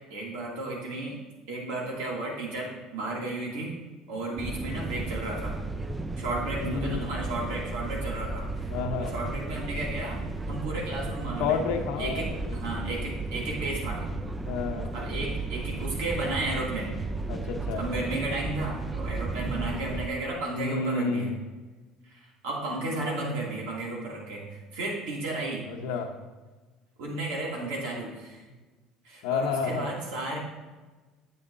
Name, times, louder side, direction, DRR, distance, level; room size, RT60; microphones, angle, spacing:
voice 1, 0.1-1.2 1.5-3.8 4.1-5.6 6.2-8.7 9.0-10.2 10.5-11.6 12.0-14.1 14.9-17.0 17.8-21.3 22.0-25.6 27.0-28.4 29.0-30.4, right 2 dB, 85° right, -3 dB, 2.5 m, -33 dB
sound 1, 4.4-20.1, right 2 dB, 15° right, 0.6 m, -34 dB
voice 2, 6.6-7.1 8.7-9.1 11.4-12.5 14.5-14.9 17.3-17.8 20.6-21.4 22.8-23.1 25.7-26.1 29.2-29.9, left 5 dB, 85° left, 5 dB, 0.8 m, -30 dB
9.6 x 7.1 x 2.7 m, 1.3 s
supercardioid pair, 100°, 0 cm